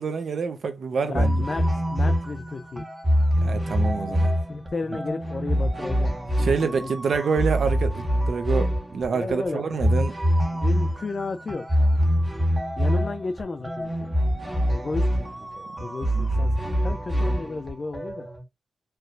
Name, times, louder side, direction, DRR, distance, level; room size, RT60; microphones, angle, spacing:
voice 1, 0.0-1.4 3.4-4.3 6.4-10.2 15.8-15.9, right 5 dB, 85° right, 0.7 m, -27 dB
voice 2, 1.0-1.6 1.9-2.8 4.1-4.2 4.5-6.2 6.6-6.9 9.1-9.6 10.4-11.7 12.8-14.1 14.7-18.3, left 3 dB, 50° left, 0.4 m, -33 dB
sound 1, 1.1-18.4, equal, 15° right, 1.3 m, -25 dB
4.6 x 3.2 x 2.5 m
wide cardioid pair, 100°, 0 cm